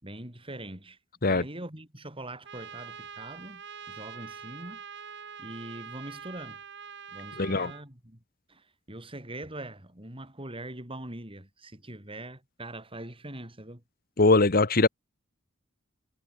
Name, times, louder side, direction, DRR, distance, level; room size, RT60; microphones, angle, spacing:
voice 1, 0.0-1.0 1.3-4.8 5.4-6.6 7.1-8.2 8.5-13.8, right 1 dB, 25° right, 5.4 m, -42 dB
Trumpet, 2.4-7.8, right 7 dB, 60° right, 3.1 m, -44 dB
voice 2, 7.4-7.7 14.2-14.9, left 3 dB, 45° left, 1.3 m, -21 dB
head